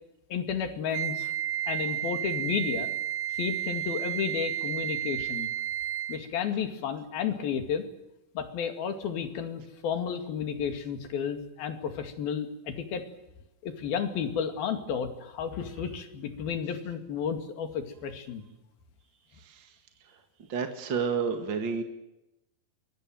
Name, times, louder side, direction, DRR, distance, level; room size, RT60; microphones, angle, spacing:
voice 1, 0.3-1.3 1.7-2.9 3.3-5.5 6.1-7.8 8.4-13.0 13.6-18.5, left 7 dB, 85° left, 7 dB, 4.2 m, -32 dB
Wind instrument woodwind instrument, 0.9-6.3, right 11 dB, 85° right, 3.0 m, -32 dB
voice 2, 19.3-19.8 20.0-20.2 20.5-21.8, right 5 dB, 40° right, 5 dB, 1.9 m, -31 dB
25.0 x 22.0 x 7.7 m, 0.94 s
omnidirectional pair, 4.2 m